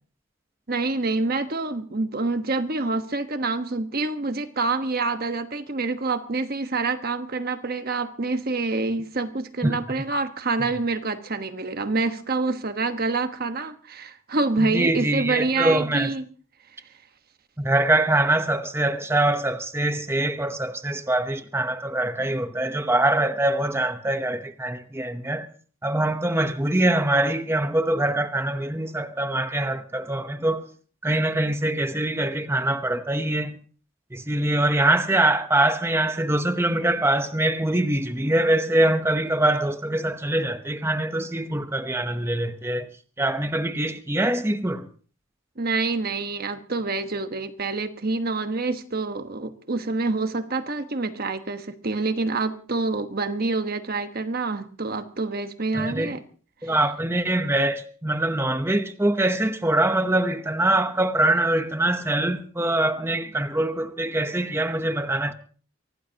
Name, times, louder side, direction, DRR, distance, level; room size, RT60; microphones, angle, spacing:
voice 1, 0.7-16.2 45.6-56.2 56.6-56.7, right 3 dB, 45° right, 1.2 m, -27 dB
voice 2, 14.6-16.1 17.6-25.5 25.8-30.7 31.0-33.6 34.1-42.9 43.2-44.9 55.7-56.2 56.6-65.3, right 1 dB, 10° right, 0.8 m, -23 dB
24.5 x 17.5 x 2.9 m
head